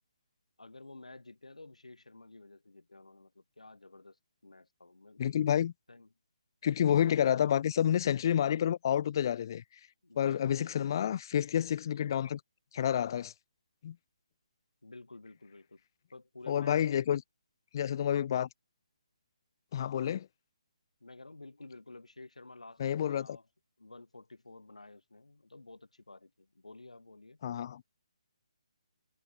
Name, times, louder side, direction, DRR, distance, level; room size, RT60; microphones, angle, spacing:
voice 1, 0.6-4.2 4.4-5.3 5.9-6.1 6.8-7.1 10.0-10.7 14.8-15.8 16.1-17.1 21.0-23.5 23.8-27.4, left 2 dB, 80° left, 5.0 m, -52 dB
voice 2, 5.2-5.7 6.6-9.6 10.2-12.4 12.7-13.3 13.8-14.0 16.5-17.2 17.7-18.5 19.7-20.3 22.8-23.3 27.4-27.8, left 9 dB, 40° left, 0.5 m, -29 dB
figure-of-eight pair, 145°, 4 cm